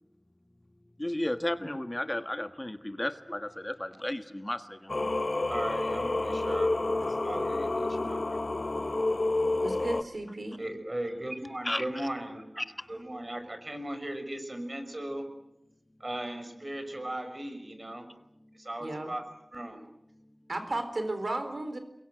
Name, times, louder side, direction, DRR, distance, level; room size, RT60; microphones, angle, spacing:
voice 1, 1.0-5.1 11.6-11.8 12.6-12.7, left 1 dB, 30° left, 9 dB, 1.5 m, -33 dB
Singing, 4.9-10.0, left 2 dB, 75° left, 1.1 m, -29 dB
voice 2, 5.5-6.7 7.0-8.2 10.6-12.6 12.9-15.3 16.0-18.1 18.6-19.2 19.5-19.8, right 1 dB, 50° right, 7 dB, 5.9 m, -37 dB
voice 3, 9.6-10.6 18.8-19.1 20.5-21.8, right 2 dB, 85° right, 8 dB, 4.2 m, -34 dB
29.5 x 22.5 x 7.8 m, 0.86 s
wide cardioid pair, 55°, 0 cm